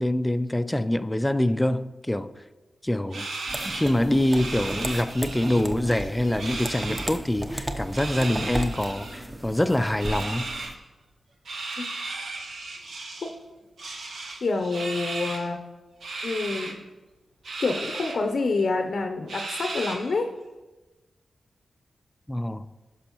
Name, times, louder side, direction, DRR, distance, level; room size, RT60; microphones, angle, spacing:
voice 1, 0.0-2.4 2.8-3.3 3.6-10.5 22.3-22.7, left 1 dB, 10° left, 0.4 m, -25 dB
sound 1, 3.1-5.6 5.9-7.1 7.8-9.2 10.0-10.7 11.5-13.3 13.8-15.5 16.0-16.7 17.4-18.2 18.6-18.7 19.3-20.2, right 3 dB, 85° right, 1.5 m, -35 dB
sound 2, 3.5-10.7, right 1 dB, 20° right, 0.8 m, -35 dB
voice 2, 14.4-15.6 16.2-16.8 17.6-20.3, left 3 dB, 65° left, 0.6 m, -27 dB
16.5 x 6.2 x 3.0 m
wide cardioid pair, 85°, 0 cm